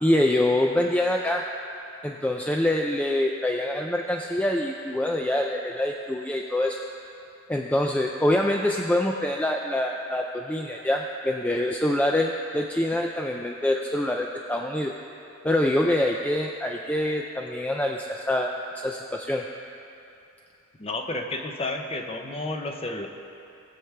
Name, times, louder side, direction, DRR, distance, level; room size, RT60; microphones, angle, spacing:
voice 1, 0.0-1.4 2.0-6.8 7.5-14.9 15.4-18.5 18.8-19.4, left 1 dB, 5° left, 1 dB, 0.4 m, -25 dB
voice 2, 20.8-23.1, left 2 dB, 30° left, 3 dB, 0.8 m, -31 dB
19.5 x 7.1 x 3.4 m, 2.7 s
head